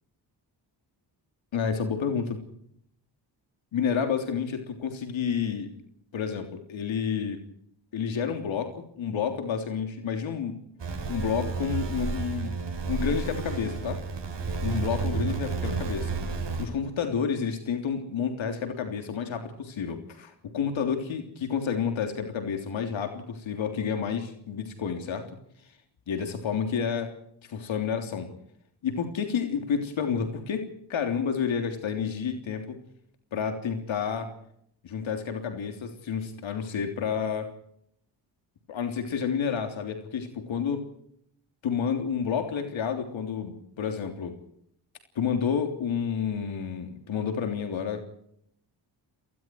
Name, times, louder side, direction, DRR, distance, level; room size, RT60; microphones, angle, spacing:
voice 1, 1.5-2.4 3.7-5.7 6.1-7.4 7.9-10.6 11.1-12.5 12.9-14.0 14.6-16.1 16.6-25.3 26.1-27.1 27.5-28.3 28.8-32.8 33.3-34.3 34.8-37.5 38.7-40.9 41.6-44.4 45.2-48.0, left 7 dB, 80° left, 6 dB, 3.4 m, -30 dB
sound 1, 10.8-16.7, right 4 dB, 65° right, 6.2 m, -31 dB
29.5 x 19.5 x 4.7 m, 0.71 s
cardioid pair, 55°, 46 cm